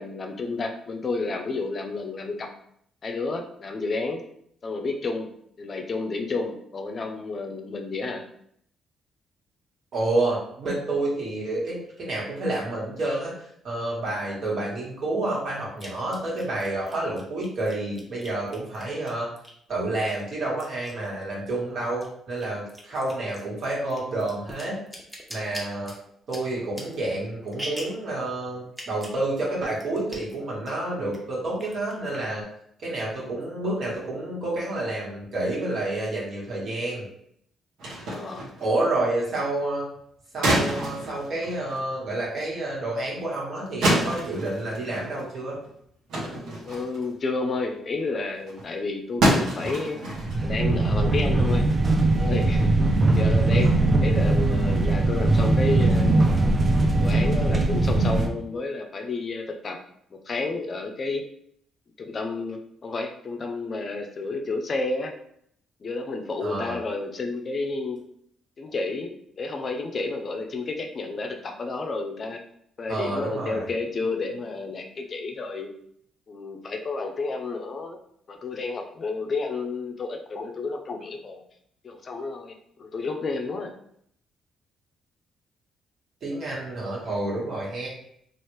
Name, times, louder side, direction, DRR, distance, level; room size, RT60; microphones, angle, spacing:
voice 1, 0.0-2.5 3.0-4.2 4.6-5.3 5.6-8.2 38.0-38.4 46.6-50.0 50.4-51.7 52.2-52.7 53.1-53.7 54.0-56.1 57.0-59.8 60.1-61.2 62.0-65.1 65.8-68.0 68.6-72.4 72.8-75.7 76.3-78.0 78.3-81.4 81.8-83.7, left 3 dB, 45° left, 4 dB, 0.5 m, -31 dB
voice 2, 9.9-13.3 13.6-19.3 19.7-24.8 25.3-25.9 26.3-32.4 32.8-37.0 38.6-39.9 40.3-45.6 66.4-66.8 72.9-73.7 86.2-87.9, right 2 dB, 60° right, -4 dB, 1.4 m, -29 dB
sound 1, 14.0-14.1 15.8-19.7 20.1-21.6 21.9-28.1 28.7-29.2 29.5-29.6 29.8-30.4 30.7-31.2 31.5-32.4, equal, 5° right, 0.8 m, -42 dB
sound 2, 37.8-38.7 40.4-41.9 42.7-42.8 43.8-45.2 45.5-45.7 46.1-47.1 47.5-47.6 48.0-48.1 48.5-48.6 49.2-50.4, right 1 dB, 80° right, 0.8 m, -27 dB
sound 3, 50.1-58.3, right 2 dB, 35° right, 0.4 m, -21 dB
3.1 x 2.4 x 3.1 m, 0.69 s
cardioid pair, 90°, 0 cm